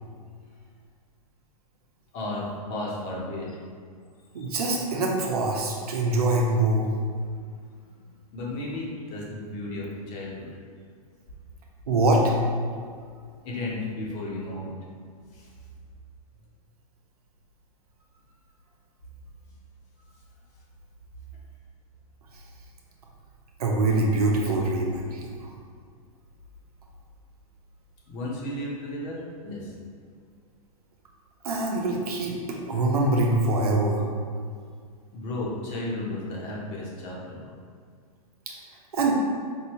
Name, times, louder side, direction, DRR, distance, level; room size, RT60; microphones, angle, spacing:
voice 1, 2.1-3.5 4.4-4.5 8.0-8.1 8.3-10.5 13.4-14.7 15.3-15.5 28.1-29.7 35.1-37.5, left 1 dB, 40° left, -4 dB, 1.1 m, -34 dB
voice 2, 4.3-6.9 11.9-12.3 23.6-25.3 31.4-34.0 38.9-39.1, right 2 dB, 85° right, -1 dB, 0.8 m, -24 dB
4.7 x 2.8 x 3.1 m, 2.1 s
hypercardioid pair, 125°, 19 cm